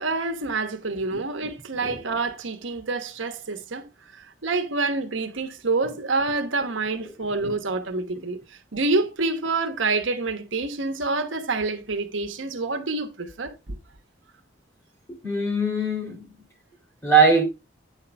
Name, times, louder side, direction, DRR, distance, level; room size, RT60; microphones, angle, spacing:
voice 1, 0.0-3.9 4.1-13.7, right 3 dB, 85° right, 1.2 m, -27 dB
voice 2, 15.2-16.3 17.0-17.4, right 4 dB, 15° left, 2.5 m, -21 dB
9.1 x 5.7 x 3.4 m
head